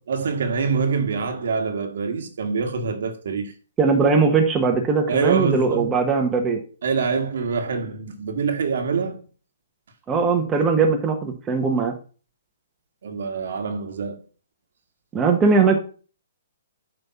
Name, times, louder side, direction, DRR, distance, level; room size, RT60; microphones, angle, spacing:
voice 1, 0.1-3.5 5.1-5.9 6.8-9.2 13.0-14.2, right 5 dB, 65° right, 1.6 m, -25 dB
voice 2, 3.8-6.6 10.1-11.9 15.1-15.8, right 4 dB, 15° right, 1.2 m, -20 dB
7.8 x 3.4 x 5.7 m
hypercardioid pair, 135°, 0 cm